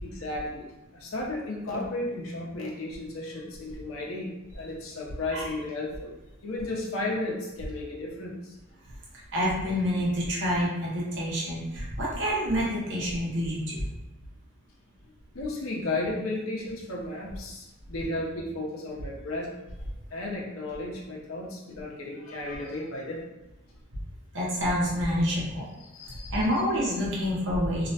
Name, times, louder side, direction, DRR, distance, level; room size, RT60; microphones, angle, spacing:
voice 1, 0.0-6.1 6.4-8.6 15.3-19.5 20.1-23.2 25.8-26.5, left 2 dB, 85° left, -2 dB, 0.6 m, -34 dB
voice 2, 9.3-13.9 24.3-25.6 26.3-27.9, equal, 60° right, -6 dB, 0.7 m, -27 dB
2.4 x 2.1 x 2.7 m, 1.0 s
head